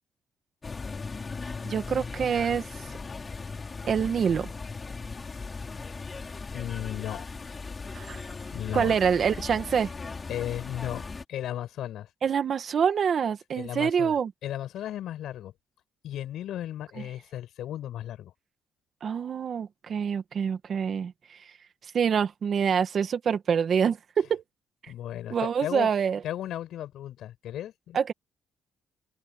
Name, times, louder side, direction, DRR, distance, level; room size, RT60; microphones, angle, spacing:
sound 1, 0.6-11.2, left 4 dB, 30° left, 6.1 m, -38 dB
voice 1, 1.6-2.6 3.8-4.5 7.9-8.2 8.7-9.9 12.2-14.3 19.0-21.4 21.9-24.4 24.8-24.9 25.3-26.2 27.9-28.1, right 7 dB, 55° right, 1.9 m, -26 dB
voice 2, 6.5-7.3 8.5-8.9 10.3-11.0 11.3-12.1 13.6-15.5 16.0-18.3 24.9-25.9 26.2-28.0, left 12 dB, 80° left, 7.5 m, -35 dB
cardioid pair, 90°, 0 cm